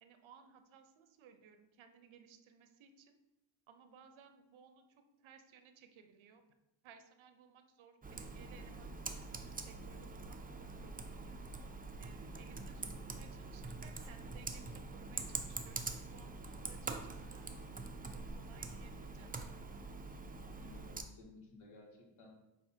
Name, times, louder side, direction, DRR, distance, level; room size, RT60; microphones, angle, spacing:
voice 1, 0.0-3.2 3.7-6.4 6.8-11.3 11.9-12.9 13.1-17.5 18.3-19.3, right 7 dB, 70° right, 8 dB, 0.8 m, -61 dB
Computer keyboard, 8.0-21.0, right 3 dB, 20° right, 0.6 m, -45 dB
voice 2, 20.4-22.3, left 2 dB, 75° left, -2 dB, 2.0 m, -57 dB
7.6 x 2.8 x 4.4 m, 0.97 s
cardioid pair, 75°, 49 cm